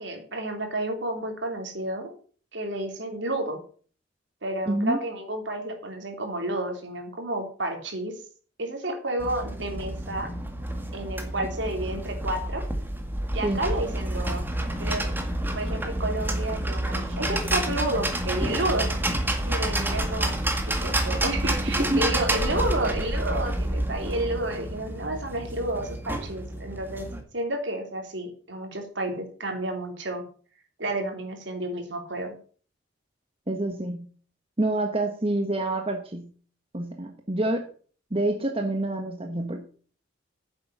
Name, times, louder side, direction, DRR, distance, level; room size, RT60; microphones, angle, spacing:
voice 1, 0.0-2.1 2.5-3.6 4.4-8.1 8.6-10.3 10.9-12.6 13.3-14.4 14.8-15.1 15.5-18.9 19.5-20.4 20.6-30.2 30.8-32.3, right 1 dB, 70° right, 4 dB, 3.2 m, -31 dB
voice 2, 4.7-5.0 13.4-13.6 21.9-22.1 33.5-34.1 34.6-36.3 36.7-37.7 38.1-39.6, right 1 dB, 30° right, 4 dB, 1.2 m, -27 dB
sound 1, 9.2-27.2, right 1 dB, 10° right, 1.7 m, -29 dB
9.8 x 7.8 x 6.7 m, 0.42 s
head